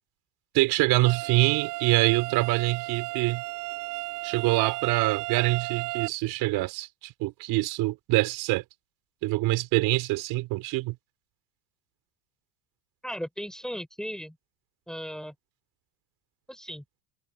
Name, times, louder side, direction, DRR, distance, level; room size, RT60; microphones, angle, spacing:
voice 1, 0.5-3.4 4.2-8.6 9.2-10.9, right 20 dB, 50° right, 4.7 m, -25 dB
sound 1, 1.1-6.1, right 24 dB, 70° right, 2.8 m, -34 dB
voice 2, 13.0-14.4 14.9-15.3 16.5-16.8, equal, ahead, 3.5 m, -36 dB
supercardioid pair, 145°, 50 cm